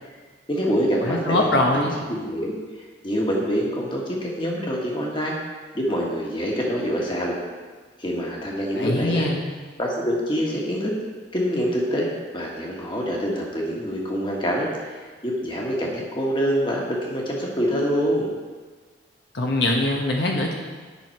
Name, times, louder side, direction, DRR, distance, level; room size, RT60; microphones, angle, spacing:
voice 1, 0.5-2.5 3.0-5.3 5.7-7.4 8.0-9.2 9.8-10.9 11.3-12.1 12.3-18.3, equal, 25° left, -2 dB, 1.5 m, -25 dB
voice 2, 1.0-2.0 8.7-9.4 19.3-20.5, left 2 dB, 70° left, 0 dB, 1.0 m, -22 dB
10.0 x 5.9 x 4.5 m, 1.4 s
head